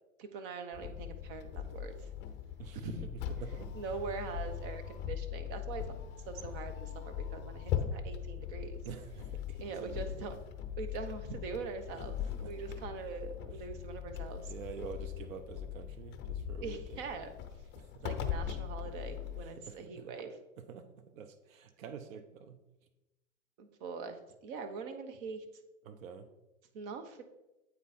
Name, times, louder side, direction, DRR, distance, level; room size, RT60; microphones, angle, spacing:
voice 1, 0.2-2.1 2.8-3.1 3.7-5.9 6.3-8.8 9.6-10.4 10.8-14.5 16.6-17.3 18.0-20.4 23.6-25.4 26.7-27.2, right 5 dB, 45° right, 7 dB, 1.1 m, -42 dB
sound 1, 0.7-19.4, left 9 dB, 25° left, 0.7 m, -40 dB
voice 2, 3.4-3.7 8.8-10.3 12.2-12.5 14.5-17.0 17.8-17.9 19.4-20.0 20.7-20.9 21.1-22.6 25.8-26.3, right 7 dB, 80° right, 9 dB, 0.8 m, -47 dB
8.3 x 4.8 x 4.3 m, 1.0 s
hypercardioid pair, 125°, 40 cm